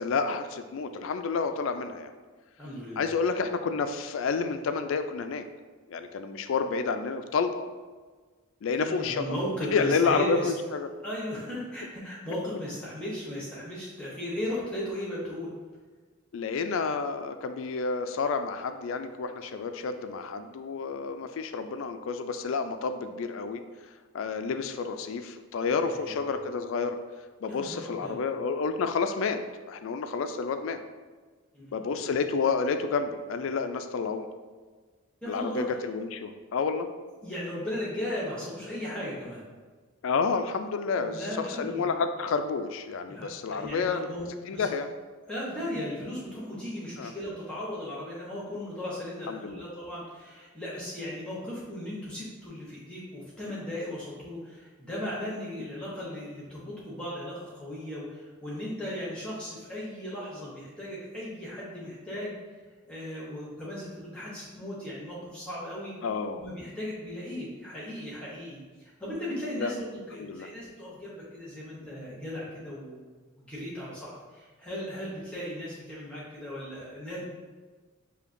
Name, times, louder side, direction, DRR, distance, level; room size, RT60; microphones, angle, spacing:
voice 1, 0.0-2.1 3.0-5.4 5.9-7.7 8.6-9.3 9.7-10.9 16.3-23.6 24.1-27.0 27.4-29.4 29.7-30.8 31.7-34.3 35.3-36.9 40.0-44.1 44.5-44.9 47.0-47.1 49.3-49.6 66.0-66.4 69.6-69.7 70.2-70.5, left 5 dB, 65° left, 8 dB, 0.3 m, -29 dB
voice 2, 2.6-3.1 8.7-10.5 11.0-15.5 25.9-26.2 27.5-28.2 31.5-31.7 35.2-35.6 37.2-39.5 41.0-41.9 43.1-44.7 45.3-62.4 62.8-65.9 66.4-73.1 73.4-77.2, left 1 dB, 5° left, -7 dB, 0.9 m, -37 dB
6.6 x 2.8 x 2.5 m, 1.4 s
head